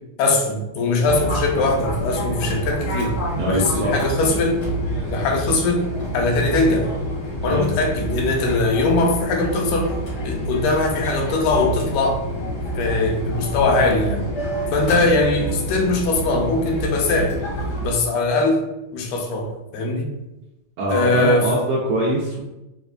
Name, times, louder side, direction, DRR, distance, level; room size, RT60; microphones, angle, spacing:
voice 1, 0.2-3.2 3.5-4.7 5.1-5.9 6.1-6.9 7.4-9.9 10.2-12.2 12.8-14.3 14.7-17.4 17.8-18.6 18.9-20.1 20.9-21.5, left 3 dB, 85° left, 2 dB, 2.0 m, -21 dB
Fixed-wing aircraft airplane, 1.0-17.9, right 1 dB, 65° left, 1.0 m, -27 dB
voice 2, 3.4-4.4 7.4-7.6 20.8-22.4, right 1 dB, 85° right, -4 dB, 1.4 m, -23 dB
4.7 x 2.2 x 2.4 m, 0.94 s
omnidirectional pair, 3.3 m